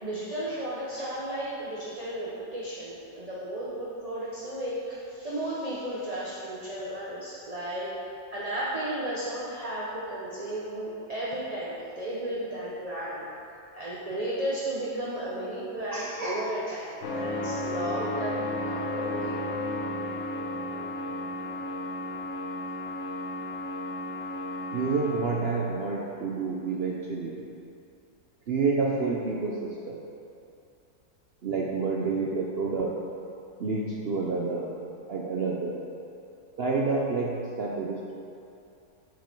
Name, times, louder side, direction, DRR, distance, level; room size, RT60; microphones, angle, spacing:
voice 1, 0.0-7.9 8.3-13.3 13.7-19.4, right 1 dB, 30° right, -7 dB, 0.8 m, -34 dB
sound 1, 17.0-25.4, left 1 dB, 50° left, 0.9 m, -33 dB
voice 2, 24.7-27.4 28.5-30.0 31.4-33.0 33.6-34.7 35.1-35.8 36.6-38.1, right 4 dB, 80° right, -2 dB, 0.5 m, -29 dB
9.1 x 5.2 x 4.6 m, 2.6 s
omnidirectional pair, 1.9 m